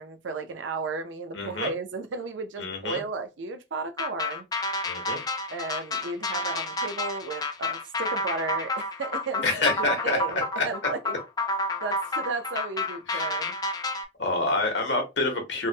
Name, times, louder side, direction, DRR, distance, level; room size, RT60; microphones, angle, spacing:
voice 1, 0.0-4.4 5.5-11.1 11.8-13.5, right 3 dB, 85° right, 0.5 m, -34 dB
voice 2, 1.3-1.7 2.6-3.0 4.8-5.2 9.4-10.2 10.6-10.7 13.1-13.3 14.2-15.7, left 3 dB, 75° left, 1.0 m, -27 dB
sound 1, 4.0-14.1, left 2 dB, 20° left, 0.3 m, -30 dB
3.5 x 2.1 x 2.7 m
head